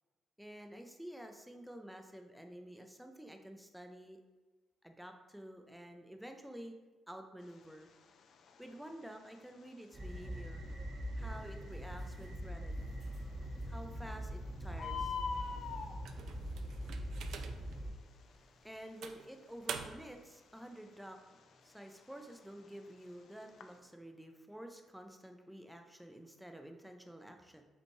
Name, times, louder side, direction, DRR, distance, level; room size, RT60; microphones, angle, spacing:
voice 1, 0.4-4.2 4.8-6.7 7.1-7.9 8.6-10.6 11.1-12.9 13.7-15.2 18.3-21.3 21.6-27.6, equal, 5° right, 5 dB, 0.5 m, -50 dB
Bird, 7.4-23.8, left 6 dB, 65° left, 0.4 m, -48 dB
sound 1, 9.9-17.9, equal, 45° right, 0.9 m, -42 dB
sound 2, 16.0-17.8 18.3-18.4 19.0-20.2, right 7 dB, 70° right, 0.3 m, -46 dB
5.2 x 3.3 x 3.1 m, 1.2 s
cardioid pair, 90°, 0 cm